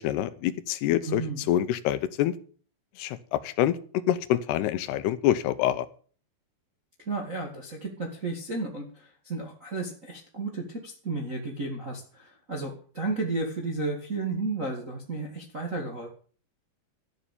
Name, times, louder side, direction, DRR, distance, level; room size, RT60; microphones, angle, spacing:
voice 1, 0.0-1.2 1.5-2.4 3.0-3.8 4.1-5.9, left 12 dB, 80° left, 13 dB, 2.8 m, -26 dB
voice 2, 1.0-1.5 7.0-16.1, right 3 dB, 35° right, 1 dB, 1.2 m, -33 dB
13.0 x 7.3 x 8.4 m, 0.42 s
omnidirectional pair, 4.9 m